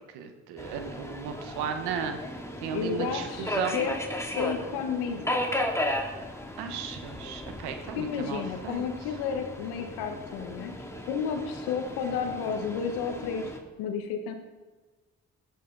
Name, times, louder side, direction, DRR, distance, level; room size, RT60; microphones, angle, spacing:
voice 1, 0.1-2.2 2.6-3.8 6.6-8.9, right 7 dB, 90° right, 6 dB, 1.3 m, -35 dB
Subway metro underground, 0.6-13.6, left 1 dB, 5° left, 2.8 m, -35 dB
voice 2, 2.7-3.9 4.4-5.4 8.0-10.7 11.1-13.5 13.8-14.3, left 6 dB, 90° left, 6 dB, 1.4 m, -32 dB
16.5 x 11.5 x 4.0 m, 1.3 s
hypercardioid pair, 45°, 38 cm